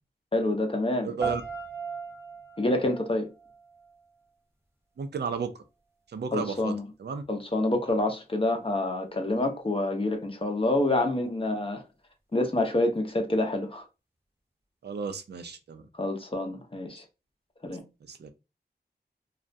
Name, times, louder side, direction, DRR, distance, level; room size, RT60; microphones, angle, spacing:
voice 1, 0.3-1.4 2.6-3.3 6.3-6.8 7.3-11.8 12.3-13.8 16.0-17.0 17.6-17.8, left 2 dB, 30° left, 0.6 m, -27 dB
voice 2, 1.0-1.4 5.0-5.5 6.1-6.7 7.0-7.2 14.8-15.9 18.0-18.3, right 6 dB, 75° right, 0.4 m, -33 dB
sound 1, 1.2-4.2, right 5 dB, 15° right, 0.7 m, -38 dB
2.3 x 2.1 x 2.5 m
wide cardioid pair, 50°, 17 cm